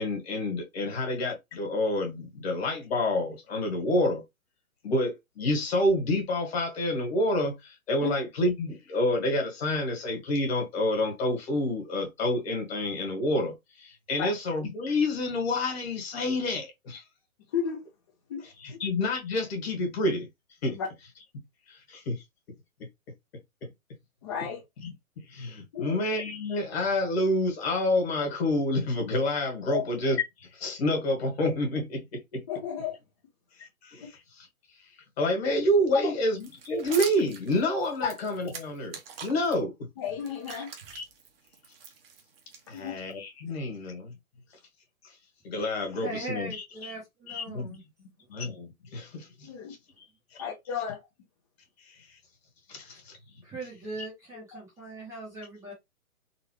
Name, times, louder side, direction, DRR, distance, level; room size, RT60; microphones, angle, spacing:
voice 1, 0.0-4.2 4.8-17.0 18.6-20.3 20.6-20.8 21.7-22.2 23.6-23.7 24.8-24.9 25.3-32.4 33.6-34.5 35.2-39.7 40.9-41.0 42.7-44.1 45.4-46.6 46.8-46.9 47.3-47.8 48.3-49.5 50.3-50.4 52.7-53.2, left 1 dB, 45° left, 2.0 m, -28 dB
voice 2, 17.5-17.8 18.3-18.4 20.7-20.9 24.2-24.6 25.7-26.0 29.7-29.8 32.5-32.9 35.9-36.1 40.0-40.7 42.7-43.0 49.4-49.7 50.4-51.0, left 8 dB, 20° left, 0.7 m, -32 dB
sound 1, 36.4-39.6 40.0-43.1, right 6 dB, 40° right, 1.0 m, -43 dB
voice 3, 46.0-47.8 50.0-50.1 52.7-53.0 53.4-55.7, right 2 dB, 5° right, 0.9 m, -40 dB
3.9 x 2.6 x 3.2 m
hypercardioid pair, 155°, 43 cm